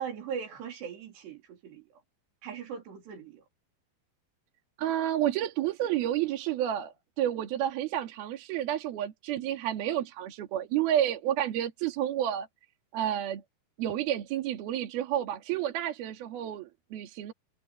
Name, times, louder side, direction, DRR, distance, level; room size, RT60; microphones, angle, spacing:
voice 1, 0.0-1.9 2.4-3.4, right 7 dB, 85° right, 5.7 m, -39 dB
voice 2, 4.8-12.5 12.9-13.4 13.8-17.3, right 11 dB, 65° right, 3.8 m, -30 dB
omnidirectional pair, 4.8 m